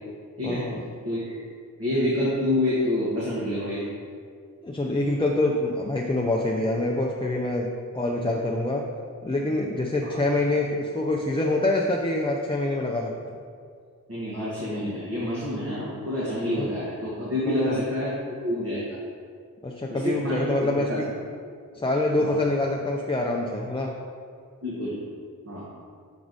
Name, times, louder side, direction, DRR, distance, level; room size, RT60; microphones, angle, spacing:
voice 1, 0.4-0.8 4.6-7.7 7.9-8.8 9.2-13.1 16.6-16.7 17.5-17.8 19.6-21.1 21.8-23.9, left 2 dB, 15° left, -1 dB, 0.4 m, -25 dB
voice 2, 1.8-3.8 10.0-10.2 14.1-18.1 18.4-18.9 19.9-21.0 22.2-22.3 24.6-25.0 25.4-25.7, left 1 dB, 45° right, -8 dB, 1.4 m, -27 dB
6.1 x 4.7 x 4.0 m, 2.2 s
wide cardioid pair, 70°, 34 cm